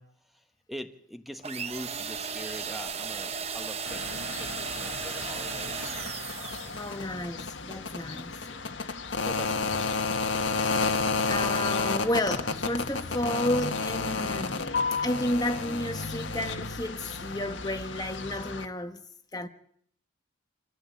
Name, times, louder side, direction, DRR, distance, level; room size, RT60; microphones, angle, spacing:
voice 1, 0.0-5.8 6.4-6.9 8.4-8.7 9.2-9.7, equal, ahead, 1.2 m, -43 dB
sound 1, 1.4-7.0, right 6 dB, 30° right, 1.0 m, -35 dB
sound 2, 3.9-18.6, left 4 dB, 70° left, 1.6 m, -31 dB
voice 2, 6.7-8.4 10.4-11.0 11.3-14.7 15.0-19.0 19.3-19.5, left 1 dB, 20° left, 1.1 m, -32 dB
26.5 x 15.0 x 8.3 m
head